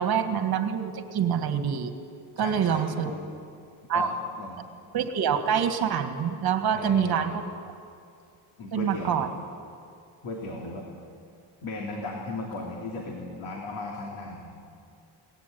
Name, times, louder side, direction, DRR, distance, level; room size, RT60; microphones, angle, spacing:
voice 1, 0.0-1.9 2.4-3.1 3.9-4.1 4.9-7.4 8.7-9.3, right 8 dB, 50° right, 7 dB, 2.0 m, -26 dB
voice 2, 2.4-3.3 3.9-4.6 6.7-7.4 8.6-9.3 10.2-10.8 11.6-14.5, left 2 dB, 75° left, 0 dB, 3.2 m, -36 dB
22.5 x 18.5 x 9.4 m, 2.4 s
cardioid pair, 145°, 49 cm